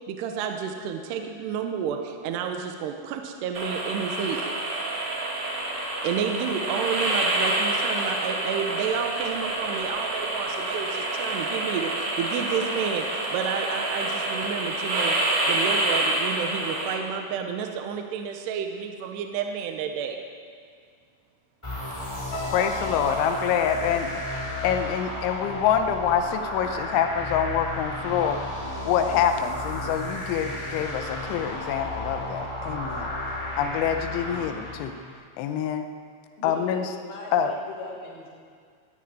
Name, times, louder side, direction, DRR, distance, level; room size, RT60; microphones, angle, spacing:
voice 1, 0.1-4.5 6.0-13.0 13.3-15.2 15.5-20.2, right 7 dB, 75° right, 4 dB, 2.8 m, -30 dB
sound 1, 3.5-16.9, right 2 dB, 50° right, 3.2 m, -28 dB
sound 2, 21.6-35.1, left 1 dB, 5° left, 3.6 m, -33 dB
sound 3, 22.3-27.6 27.9-28.2, left 2 dB, 45° left, 4.8 m, -39 dB
voice 2, 22.5-28.4 28.9-33.1 33.6-35.0 35.4-35.9 36.4-36.9 37.3-37.5, left 8 dB, 85° left, 7 dB, 3.1 m, -26 dB
voice 3, 36.4-38.3, left 3 dB, 65° left, -5 dB, 5.4 m, -39 dB
15.5 x 10.0 x 9.2 m, 2.1 s
omnidirectional pair, 5.3 m